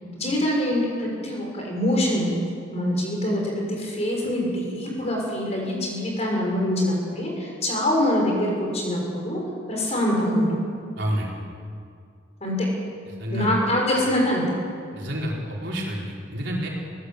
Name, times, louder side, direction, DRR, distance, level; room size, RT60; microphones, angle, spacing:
voice 1, 0.0-2.3 2.7-9.4 9.7-10.6 12.4-12.7 13.3-14.4, left 1 dB, 35° left, -1 dB, 5.9 m, -24 dB
voice 2, 11.0-11.3 13.2-13.5 14.9-16.7, equal, 60° right, -3 dB, 4.4 m, -29 dB
23.0 x 16.5 x 8.1 m, 2.2 s
head